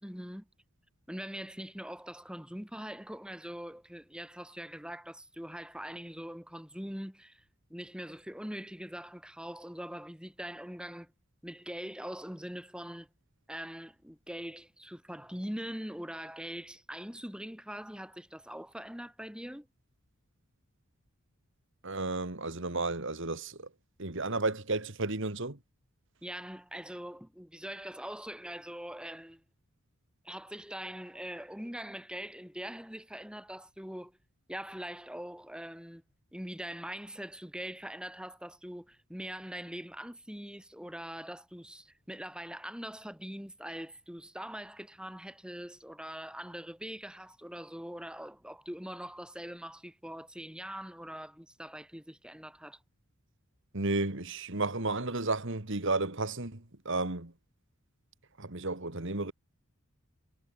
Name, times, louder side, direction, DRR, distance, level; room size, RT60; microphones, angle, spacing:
voice 1, 0.0-0.5 1.1-7.4 7.7-11.1 11.4-13.1 13.5-19.7 26.2-29.4 30.2-34.2 34.5-36.0 36.3-52.8, equal, 5° right, 4.0 m, -42 dB
voice 2, 21.8-23.7 24.0-25.6 53.7-57.3 58.4-59.3, right 2 dB, 60° right, 2.4 m, -33 dB
head